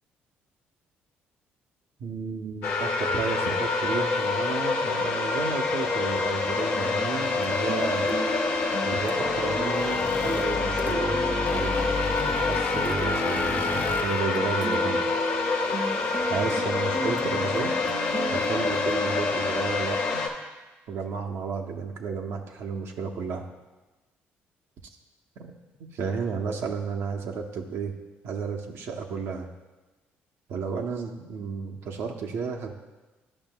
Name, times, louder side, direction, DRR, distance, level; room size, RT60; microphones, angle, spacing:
voice 1, 2.0-8.1 8.8-11.2 11.5-12.1 12.4-15.1 16.2-17.7 18.3-20.2 20.9-23.4 25.8-27.9 28.2-29.5 30.5-32.7, right 5 dB, 75° right, 2 dB, 0.7 m, -32 dB
sound 1, 2.6-20.3, left 4 dB, 80° left, 0.9 m, -27 dB
sound 2, 6.8-18.9, right 3 dB, 35° right, 0.5 m, -36 dB
sound 3, 9.1-14.2, left 4 dB, 40° left, 0.5 m, -33 dB
11.0 x 5.3 x 2.2 m, 1.2 s
cardioid pair, 80°, 4 cm